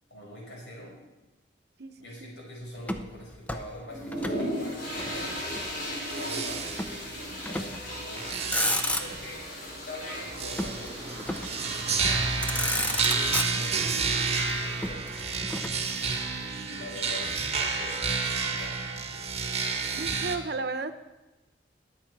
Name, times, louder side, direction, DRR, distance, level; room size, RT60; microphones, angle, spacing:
voice 1, 0.1-1.0 2.0-5.7 6.0-8.5 8.8-9.5 9.8-15.1 16.3-18.7, left 1 dB, 85° left, -3 dB, 5.8 m, -44 dB
voice 2, 1.8-2.3 16.7-17.1 19.9-20.9, right 3 dB, 60° right, 9 dB, 0.9 m, -35 dB
Motor vehicle (road), 2.8-4.5 4.7-5.8 6.8-7.0 7.5-7.9 8.3-9.4 10.6-11.6 12.1-12.2 12.4-13.9 14.8-16.5, left 1 dB, 10° left, 0.6 m, -32 dB
sound 1, 3.9-14.9, equal, 55° left, 4.4 m, -38 dB
sound 2, 5.0-20.4, right 4 dB, 35° right, 1.4 m, -31 dB
21.5 x 7.5 x 4.7 m, 1.1 s
head